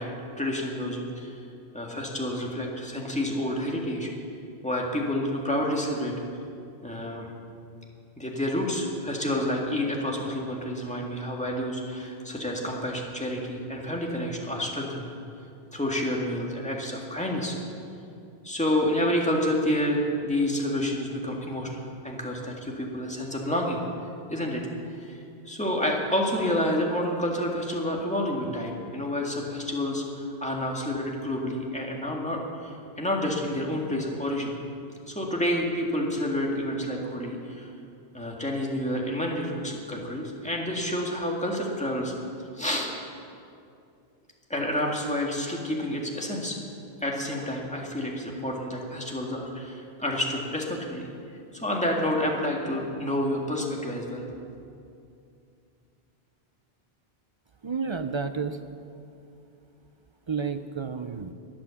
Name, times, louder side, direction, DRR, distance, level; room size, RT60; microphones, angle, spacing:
voice 1, 0.0-1.3 1.7-4.1 4.6-6.1 6.8-7.3 8.2-15.1 15.7-17.6 18.4-23.8 24.3-24.7 25.0-25.2 25.5-34.5 35.1-37.7 38.1-42.1 42.5-42.9 44.5-46.6 47.0-51.0 51.5-54.3, left 1 dB, 5° left, -1 dB, 1.9 m, -29 dB
voice 2, 57.6-58.6 60.3-61.3, right 5 dB, 40° right, 9 dB, 0.4 m, -31 dB
21.0 x 7.8 x 7.1 m, 2.5 s
omnidirectional pair, 1.0 m